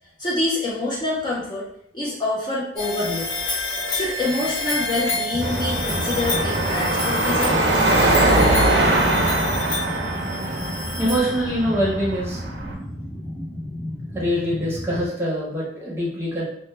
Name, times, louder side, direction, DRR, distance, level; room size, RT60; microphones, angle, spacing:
voice 1, 0.2-1.6 1.9-3.3 3.9-7.6, left 2 dB, 25° left, -5 dB, 0.4 m, -26 dB
sound 1, 2.8-11.8, left 2 dB, 80° left, 0.9 m, -29 dB
sound 2, 5.3-15.1, equal, 45° left, 1.1 m, -33 dB
Car passing by / Traffic noise roadway noise / Engine, 5.4-12.7, right 2 dB, 65° right, 0.4 m, -22 dB
voice 2, 10.3-10.7 11.0-12.4 14.1-16.4, equal, 15° right, -6 dB, 0.7 m, -24 dB
2.1 x 2.0 x 3.1 m, 0.73 s
head